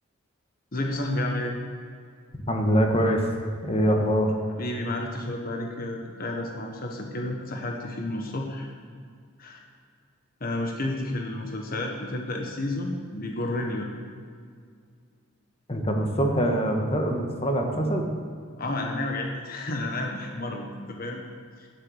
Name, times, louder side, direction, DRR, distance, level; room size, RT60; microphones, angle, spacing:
voice 1, 0.7-1.5 4.6-8.7 9.4-9.6 10.4-13.9 18.6-21.2 21.6-21.7, left 1 dB, 45° left, 2 dB, 1.3 m, -31 dB
voice 2, 2.5-3.3 3.6-4.3 15.7-18.1, equal, 30° left, 2 dB, 1.5 m, -24 dB
12.5 x 10.0 x 6.4 m, 2.1 s
head